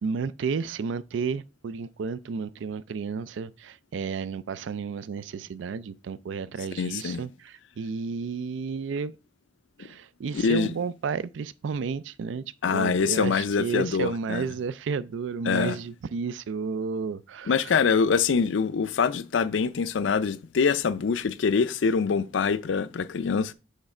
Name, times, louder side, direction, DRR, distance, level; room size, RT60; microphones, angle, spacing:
voice 1, 0.0-9.2 9.8-17.7, right 5 dB, 85° right, 0.4 m, -32 dB
voice 2, 6.8-7.2 10.3-10.7 12.6-14.5 15.5-15.8 17.5-23.5, left 5 dB, 85° left, 0.4 m, -24 dB
6.5 x 3.2 x 4.9 m
head